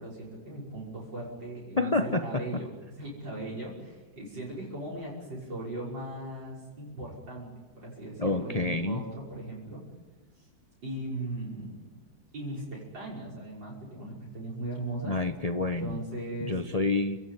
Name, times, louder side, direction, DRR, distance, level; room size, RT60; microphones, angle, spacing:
voice 1, 0.0-7.5 7.8-9.8 10.4-10.5 10.8-11.9 12.3-15.2 15.8-16.5, right 1 dB, 70° right, -5 dB, 6.5 m, -38 dB
voice 2, 1.8-2.4 8.2-9.0 15.0-16.0 16.4-17.2, left 2 dB, 25° left, 8 dB, 0.8 m, -28 dB
29.5 x 17.0 x 9.5 m, 1.2 s
omnidirectional pair, 2.1 m